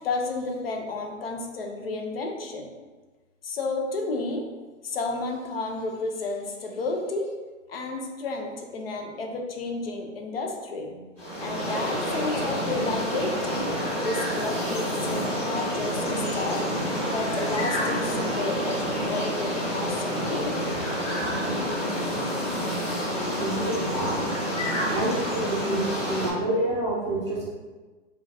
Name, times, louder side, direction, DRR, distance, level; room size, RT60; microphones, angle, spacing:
voice 1, 0.0-2.8 3.4-4.5 4.8-7.3 7.7-11.1 11.4-13.7 14.0-16.7 17.1-20.7 21.3-21.4, left 3 dB, 50° left, 2 dB, 0.8 m, -32 dB
sound 1, 11.2-26.3, equal, 5° left, 1.4 m, -28 dB
voice 2, 23.3-24.3 24.9-27.5, right 1 dB, 25° right, -7 dB, 0.6 m, -28 dB
4.8 x 2.4 x 4.1 m, 1.3 s
hypercardioid pair, 180°, 37 cm